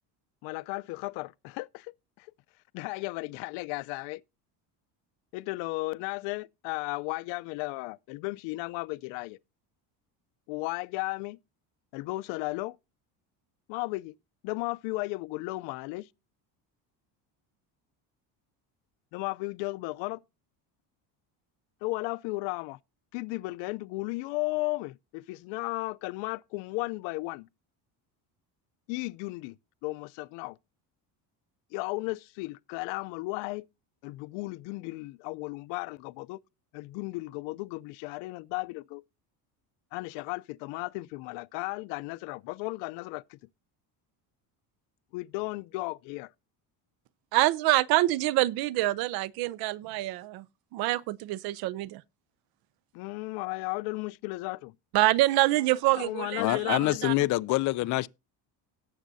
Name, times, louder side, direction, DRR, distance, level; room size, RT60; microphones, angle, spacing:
voice 1, 0.4-2.3 2.7-4.2 5.3-9.4 10.5-11.4 11.9-12.8 13.7-14.1 14.4-16.1 19.1-20.2 21.8-22.8 23.1-27.5 28.9-29.6 29.8-30.6 31.7-33.6 34.0-36.4 36.7-39.0 39.9-43.4 45.1-46.3 52.9-54.7 55.9-57.1, left 23 dB, 85° left, 0.7 m, -35 dB
voice 2, 47.3-50.5 50.7-52.0 54.9-57.1, right 17 dB, 60° right, 0.6 m, -26 dB
voice 3, 56.4-58.1, left 18 dB, 45° left, 0.4 m, -26 dB
18.0 x 7.4 x 2.7 m
cardioid pair, 165°, 42 cm